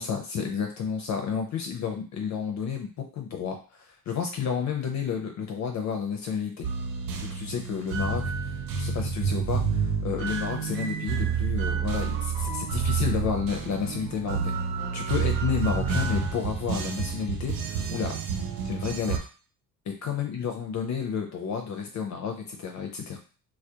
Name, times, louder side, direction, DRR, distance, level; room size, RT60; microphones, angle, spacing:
voice 1, 0.0-6.7 7.2-14.6 14.9-18.2 18.6-19.3 20.0-23.2, left 7 dB, 50° left, 3 dB, 0.5 m, -31 dB
sound 1, 6.6-19.2, right 6 dB, 65° right, 0.5 m, -29 dB
2.2 x 2.0 x 2.7 m, 0.37 s
supercardioid pair, 65°, 38 cm